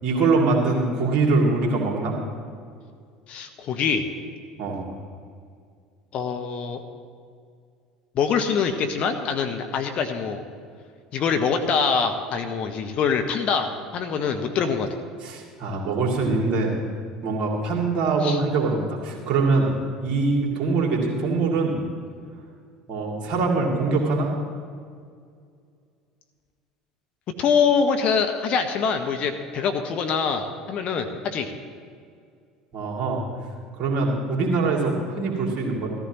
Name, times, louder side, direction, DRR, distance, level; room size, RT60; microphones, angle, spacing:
voice 1, 0.0-2.2 4.6-4.8 15.2-16.7 17.2-19.7 20.0-21.8 22.9-24.3 32.7-33.2 33.8-35.9, right 3 dB, 45° right, -1 dB, 2.6 m, -23 dB
voice 2, 3.3-4.0 6.1-6.8 8.1-10.4 11.1-14.9 18.2-18.4 27.4-31.5, left 6 dB, 45° left, 6 dB, 1.0 m, -24 dB
14.5 x 14.0 x 3.1 m, 2.2 s
figure-of-eight pair, 65°, 3 cm